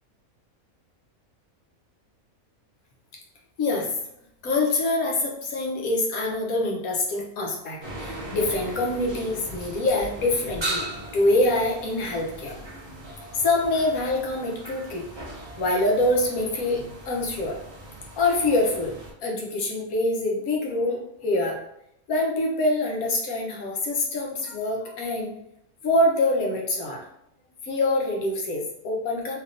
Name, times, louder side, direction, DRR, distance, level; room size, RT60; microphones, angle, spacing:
voice 1, 3.6-4.0 4.4-10.9 11.1-12.6 13.3-15.1 15.6-17.6 18.2-21.6 22.1-25.3 25.8-27.0 27.6-29.4, left 2 dB, 85° left, -1 dB, 1.2 m, -25 dB
sound 1, 7.8-19.1, right 1 dB, 30° right, 0.5 m, -38 dB
3.3 x 2.8 x 2.5 m, 0.78 s
omnidirectional pair, 1.5 m